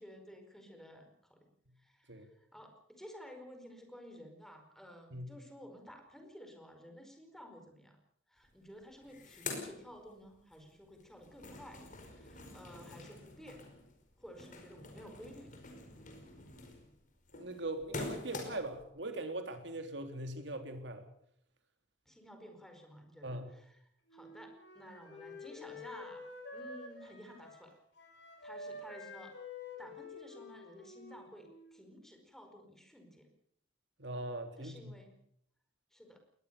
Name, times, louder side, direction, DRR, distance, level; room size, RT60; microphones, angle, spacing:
voice 1, 0.0-1.5 1.8-8.0 8.3-13.6 14.2-15.5 22.1-23.8 24.1-27.7 28.4-29.3 29.8-33.3 34.6-35.2 35.9-36.2, equal, ahead, 5 dB, 4.8 m, -53 dB
sound 1, 8.4-8.5 8.8-10.6 10.9-18.8, left 3 dB, 45° left, 5.1 m, -46 dB
voice 2, 17.3-21.1 23.2-23.5 34.0-34.9, right 1 dB, 65° right, 7 dB, 3.5 m, -41 dB
Wind instrument woodwind instrument, 24.1-31.8, left 3 dB, 65° left, 7.8 m, -49 dB
21.0 x 20.0 x 6.8 m, 0.69 s
head